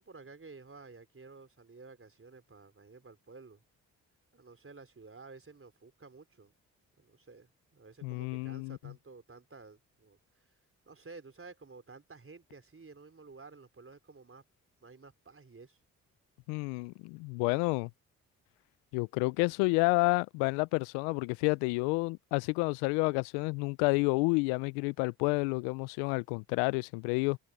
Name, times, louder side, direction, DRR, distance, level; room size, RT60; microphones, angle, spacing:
voice 1, 0.0-3.6 4.3-6.5 7.0-10.2 10.9-14.4 14.8-15.8, right 4 dB, 35° right, 4.4 m, -52 dB
voice 2, 8.0-8.8 16.5-17.9 18.9-27.4, left 28 dB, 85° left, 0.6 m, -30 dB
hypercardioid pair, 40°, 38 cm